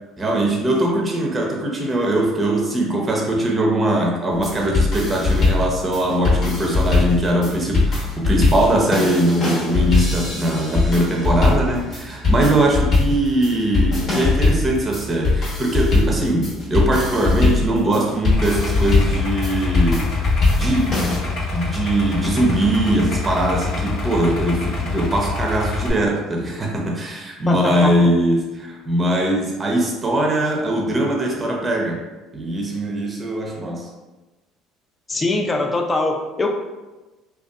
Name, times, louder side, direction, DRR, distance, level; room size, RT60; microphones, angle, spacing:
voice 1, 0.2-20.1 20.6-21.0 21.5-32.0 32.3-33.9, right 1 dB, 25° right, -1 dB, 0.6 m, -21 dB
sound 1, 4.3-21.2, left 3 dB, 50° left, 0.9 m, -20 dB
Idling, 18.3-25.9, left 3 dB, 75° left, 0.6 m, -26 dB
voice 2, 27.5-27.9 35.1-36.5, left 2 dB, 25° left, 3 dB, 0.4 m, -22 dB
2.5 x 2.3 x 2.3 m, 1.1 s
supercardioid pair, 80°, 0 cm